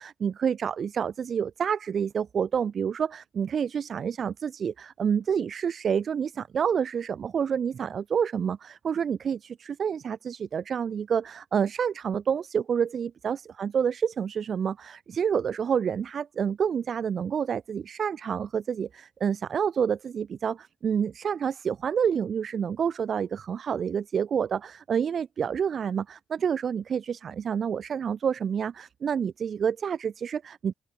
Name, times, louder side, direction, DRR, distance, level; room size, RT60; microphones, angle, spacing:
voice 1, 0.0-30.7, right 7 dB, 50° right, 1.0 m, -28 dB
open air
cardioid pair, 90°, 0 cm